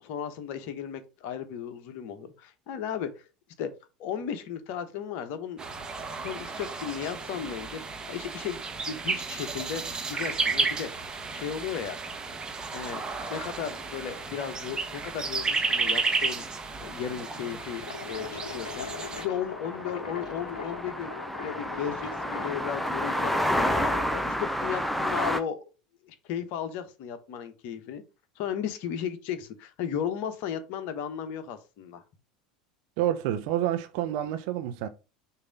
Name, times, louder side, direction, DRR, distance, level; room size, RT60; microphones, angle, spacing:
voice 1, 0.0-3.1 3.6-3.7 4.0-5.6 6.2-7.8 8.1-10.9 11.3-12.0 12.7-13.0 13.3-16.5 16.8-21.1 21.4-25.6 26.0-28.0 28.4-32.0, left 8 dB, 50° left, 1.0 m, -35 dB
sound 1, 5.6-19.2, right 4 dB, 20° right, 1.1 m, -32 dB
sound 2, 12.6-12.7 13.1-13.2 15.7-15.9 16.2-16.3 16.6-25.4, equal, 5° left, 0.6 m, -31 dB
sound 3, 17.8-24.2, left 6 dB, 70° left, 0.8 m, -40 dB
voice 2, 33.0-34.9, right 12 dB, 50° right, 0.7 m, -28 dB
6.6 x 2.8 x 5.1 m
figure-of-eight pair, 75°, 4 cm